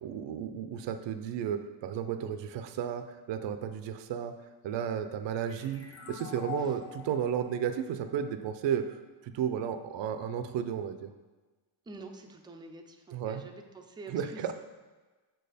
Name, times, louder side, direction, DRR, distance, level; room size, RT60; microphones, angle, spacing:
voice 1, 0.0-4.3 4.6-11.1 13.1-13.4 14.1-14.5, right 8 dB, 65° right, 8 dB, 0.6 m, -33 dB
sound 1, 5.5-8.9, left 8 dB, 30° left, 0.8 m, -46 dB
voice 2, 11.9-14.5, right 3 dB, 10° right, 3 dB, 0.4 m, -47 dB
6.0 x 4.6 x 5.0 m, 1.3 s
cardioid pair, 145°, 46 cm